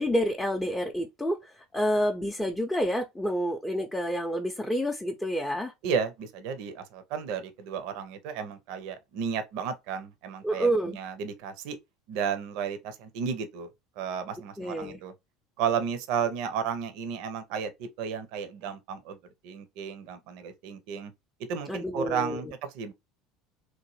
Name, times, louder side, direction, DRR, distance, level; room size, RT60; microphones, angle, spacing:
voice 1, 0.0-5.7 10.4-11.0 14.6-15.0 21.7-22.5, equal, 10° left, 0.5 m, -28 dB
voice 2, 5.8-11.8 12.1-13.7 14.0-15.1 15.6-19.2 19.4-21.1 21.5-22.9, right 7 dB, 65° right, 0.5 m, -33 dB
2.9 x 2.1 x 3.0 m
hypercardioid pair, 75°, 0 cm